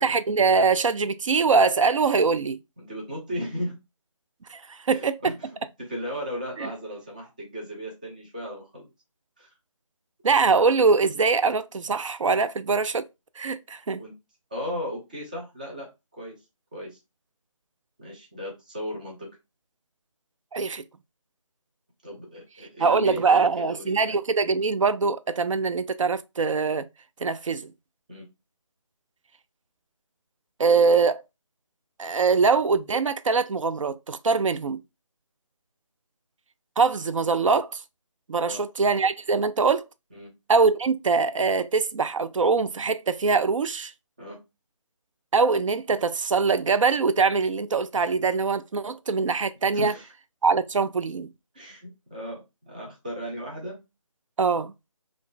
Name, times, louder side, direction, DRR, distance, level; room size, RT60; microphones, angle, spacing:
voice 1, 0.0-2.6 4.5-5.4 6.6-6.7 10.2-13.1 13.4-14.0 20.5-20.8 22.8-26.9 27.2-27.7 30.6-31.2 32.0-34.8 36.8-37.8 38.3-39.8 40.5-43.9 45.3-49.9 50.4-51.3 54.4-54.7, right 4 dB, 70° right, 0.4 m, -23 dB
voice 2, 2.8-3.8 4.9-5.5 5.8-8.9 9.4-9.5 13.9-14.1 14.5-16.4 16.7-17.0 18.0-19.3 22.0-24.2 28.1-28.3 38.4-38.6 40.1-40.3 44.2-44.4 49.7-50.1 51.5-53.8, equal, 15° right, 0.6 m, -36 dB
2.6 x 2.4 x 3.6 m
figure-of-eight pair, 170°, 17 cm